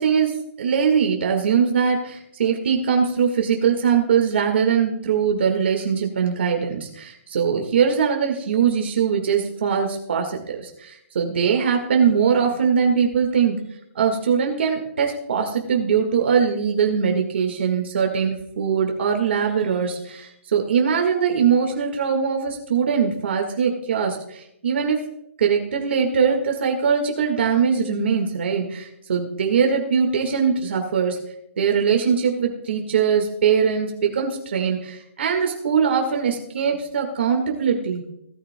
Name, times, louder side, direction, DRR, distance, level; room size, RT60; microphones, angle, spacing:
voice 1, 0.0-13.6 13.9-25.0 25.4-31.2 31.6-38.0, right 6 dB, 55° right, 2 dB, 1.7 m, -21 dB
18.5 x 10.0 x 2.2 m, 0.77 s
hypercardioid pair, 175°, 7 cm